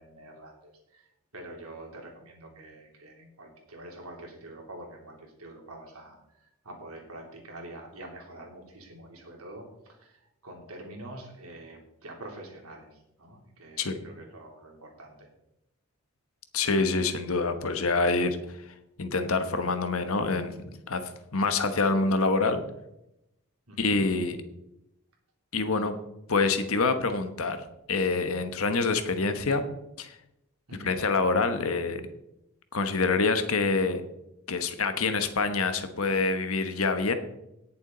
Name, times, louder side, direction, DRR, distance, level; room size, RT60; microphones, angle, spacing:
voice 1, 0.0-15.3 23.7-24.0 30.7-30.9, right 1 dB, 80° right, 1 dB, 3.1 m, -46 dB
voice 2, 16.5-18.7 19.0-20.6 20.9-21.0 21.3-22.6 23.8-24.4 25.5-26.0 26.3-29.7 30.0-30.2 30.8-32.0 32.7-34.0 34.5-37.1, left 3 dB, 70° left, 9 dB, 1.2 m, -26 dB
18.0 x 7.2 x 3.9 m, 0.86 s
head